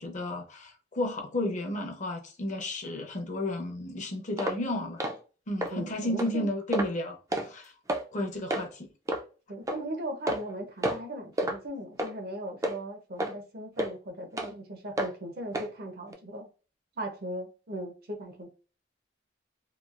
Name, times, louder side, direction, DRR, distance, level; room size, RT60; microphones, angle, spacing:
voice 1, 0.0-5.1 5.5-7.7 8.1-8.9, left 1 dB, 40° left, 0.6 m, -33 dB
sound 1, 4.4-4.6 5.0-5.2 5.6-5.7 6.2-6.3 6.7-7.0 7.3-7.5 7.9-8.0 8.5-8.7 9.1-9.2 9.7-9.8 10.3-10.5 10.8-11.1 11.4-11.6 12.0-12.1 12.6-12.8 13.2-13.3 13.8-13.9 14.4-14.5 15.0-15.1 15.5-15.7 16.1-16.2, right 1 dB, 15° right, 0.3 m, -30 dB
voice 2, 5.7-6.5 9.5-16.5 17.0-18.5, right 1 dB, 55° right, 0.7 m, -38 dB
3.0 x 2.3 x 2.4 m
head